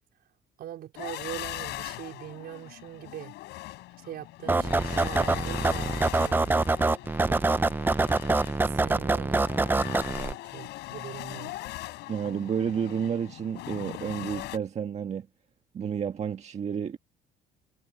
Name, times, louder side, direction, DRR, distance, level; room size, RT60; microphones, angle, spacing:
voice 1, 0.6-3.3 4.0-7.6 8.6-9.4 9.7-11.6, right 12 dB, 65° right, 4.6 m, -42 dB
sound 1, 0.9-14.6, left 18 dB, 85° left, 7.8 m, -40 dB
sound 2, 4.5-10.3, right 3 dB, 10° right, 0.6 m, -25 dB
voice 2, 12.1-15.3 15.7-17.0, right 7 dB, 40° right, 1.6 m, -30 dB
cardioid pair, 110°, 17 cm